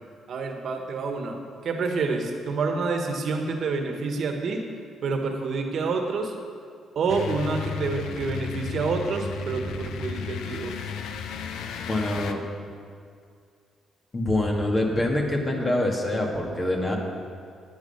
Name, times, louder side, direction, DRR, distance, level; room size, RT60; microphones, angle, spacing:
voice 1, 0.3-4.6 5.0-6.3 6.9-10.9, right 4 dB, 60° right, 3 dB, 1.5 m, -28 dB
sound 1, 7.1-12.3, left 6 dB, 85° left, 0.7 m, -34 dB
voice 2, 11.9-12.4 14.1-17.0, left 1 dB, 25° left, 0 dB, 1.9 m, -25 dB
9.8 x 9.5 x 5.7 m, 2.2 s
cardioid pair, 90°, 0 cm